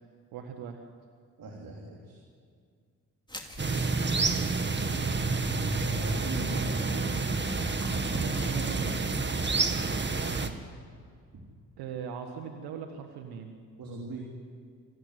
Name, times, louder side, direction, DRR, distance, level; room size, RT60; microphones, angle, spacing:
voice 1, 0.3-0.8 8.1-9.2 11.8-13.5, right 7 dB, 85° right, 4 dB, 1.6 m, -39 dB
voice 2, 1.4-2.2 5.7-7.1 11.3-11.5 13.8-14.4, right 2 dB, 65° right, 0 dB, 3.5 m, -40 dB
sound 1, 3.3-8.9, left 1 dB, 10° left, 3.0 m, -49 dB
sound 2, 3.6-10.5, right 3 dB, 30° right, 2.0 m, -29 dB
25.5 x 15.0 x 9.7 m, 2.1 s
supercardioid pair, 55°, 37 cm